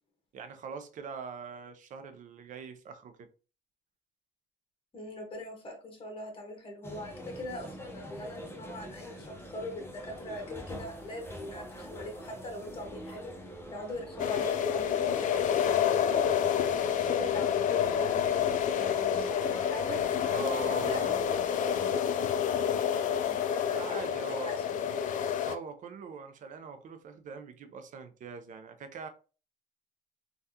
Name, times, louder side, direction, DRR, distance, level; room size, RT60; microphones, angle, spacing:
voice 1, 0.3-3.3 20.3-21.2 23.7-24.6 25.4-29.1, right 5 dB, 50° right, 0.5 m, -42 dB
voice 2, 4.9-13.3 13.7-18.3 18.7-20.0 20.7-25.3, left 2 dB, 30° left, 1.1 m, -42 dB
sound 1, 6.8-21.9, equal, 15° left, 0.7 m, -45 dB
sound 2, 14.2-25.5, left 8 dB, 50° left, 0.4 m, -28 dB
3.4 x 2.4 x 2.7 m
cardioid pair, 110°, 17 cm